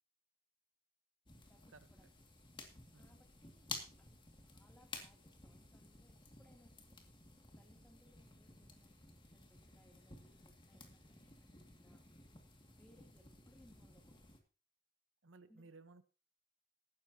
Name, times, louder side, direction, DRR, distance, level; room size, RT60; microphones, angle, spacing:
sound 1, 1.3-14.4, left 3 dB, 25° left, 2.2 m, -54 dB
voice 1, 1.5-2.1 3.0-3.7 4.0-7.0 7.6-12.0 12.7-14.3 15.5-15.7, equal, 10° left, 3 dB, 2.9 m, -69 dB
voice 2, 15.2-16.0, right 3 dB, 90° right, 11 dB, 1.1 m, -59 dB
17.5 x 12.5 x 2.9 m, 0.35 s
head